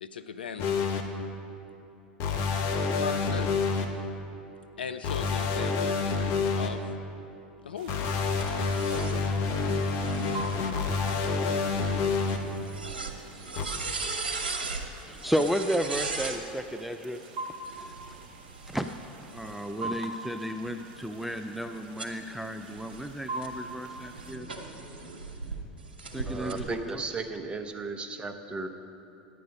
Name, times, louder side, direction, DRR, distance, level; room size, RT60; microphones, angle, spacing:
voice 1, 0.0-0.8 3.0-3.5 4.8-6.0 6.6-6.8 7.6-8.1, left 6 dB, 85° left, 10 dB, 0.5 m, -38 dB
sound 1, 0.6-1.0 2.2-3.8 5.0-6.7 7.9-12.4 13.6-13.7, left 4 dB, 50° left, 1.0 m, -28 dB
sound 2, 7.8-24.3, right 2 dB, 60° right, 1.1 m, -44 dB
sound 3, 8.4-16.4 17.5-19.9 20.5-25.6 26.0-26.6, right 4 dB, 85° right, 1.0 m, -39 dB
voice 2, 15.1-17.3 17.7-18.2 18.7-18.9 19.3-24.5 26.1-27.3, equal, 5° right, 6 dB, 0.4 m, -33 dB
voice 3, 26.3-28.7, right 3 dB, 20° right, 7 dB, 0.9 m, -35 dB
10.5 x 8.5 x 5.3 m, 3.0 s
hypercardioid pair, 85°, 5 cm